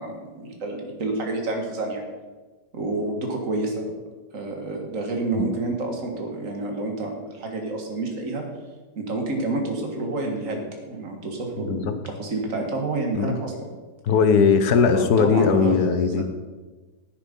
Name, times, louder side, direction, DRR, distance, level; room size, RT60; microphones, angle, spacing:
voice 1, 0.0-2.0 2.7-3.9 4.3-8.4 9.0-13.5 14.9-15.8 16.2-16.3, right 2 dB, 50° right, 2 dB, 2.1 m, -29 dB
voice 2, 11.6-12.0 13.1-13.4 14.0-16.2, left 5 dB, 70° left, 9 dB, 1.4 m, -19 dB
10.5 x 8.7 x 5.3 m, 1.3 s
omnidirectional pair, 1.7 m